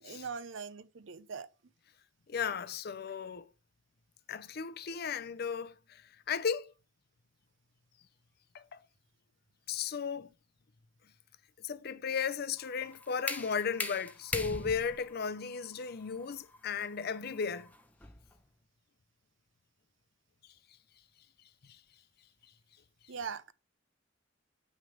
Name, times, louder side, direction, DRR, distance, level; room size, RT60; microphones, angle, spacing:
voice 1, 0.0-1.5 23.1-23.5, right 5 dB, 80° right, 0.6 m, -41 dB
voice 2, 2.3-3.5 4.3-6.0 6.3-6.7 8.5-8.8 9.7-10.3 11.6-17.7, left 6 dB, 55° left, 0.5 m, -35 dB
sound 1, 12.6-18.3, left 2 dB, 10° left, 0.7 m, -41 dB
9.0 x 3.4 x 4.7 m
head